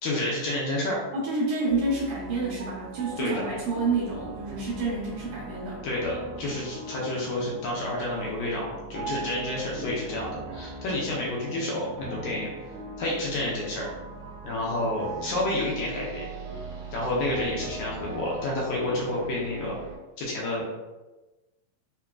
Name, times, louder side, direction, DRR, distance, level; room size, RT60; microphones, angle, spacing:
voice 1, 0.0-1.0 3.2-3.3 5.8-12.5 13.0-13.8 14.4-16.3 16.9-19.7 20.2-20.6, left 1 dB, 75° left, -4 dB, 1.8 m, -29 dB
voice 2, 1.1-5.8, right 3 dB, 85° right, -7 dB, 1.4 m, -29 dB
sound 1, 1.7-20.0, right 3 dB, 70° right, 1.3 m, -40 dB
5.6 x 2.2 x 2.3 m, 1.1 s
omnidirectional pair, 4.1 m